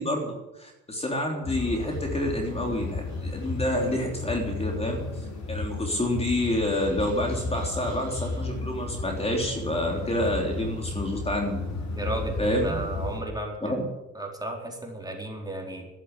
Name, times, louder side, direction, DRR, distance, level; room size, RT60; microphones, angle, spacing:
voice 1, 0.0-11.6 12.4-12.8 13.6-13.8, left 1 dB, 20° left, 1 dB, 3.4 m, -28 dB
sound 1, 1.4-13.2, left 3 dB, 65° left, 8.0 m, -34 dB
voice 2, 11.9-13.7 14.1-15.9, right 2 dB, 15° right, 0 dB, 4.3 m, -34 dB
12.0 x 10.5 x 9.8 m, 0.98 s
cardioid pair, 90°, 30 cm